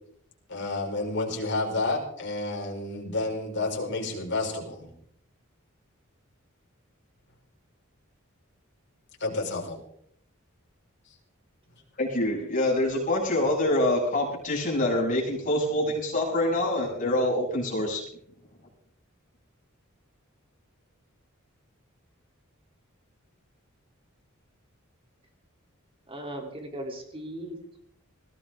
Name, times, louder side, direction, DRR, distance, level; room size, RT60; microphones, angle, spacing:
voice 1, 0.5-4.9 9.2-9.8, left 2 dB, 60° left, 0 dB, 4.9 m, -30 dB
voice 2, 12.0-18.0, left 1 dB, 40° left, -2 dB, 7.2 m, -25 dB
voice 3, 26.1-27.8, right 1 dB, 25° right, 2 dB, 3.5 m, -38 dB
20.5 x 17.0 x 3.8 m, 0.67 s
head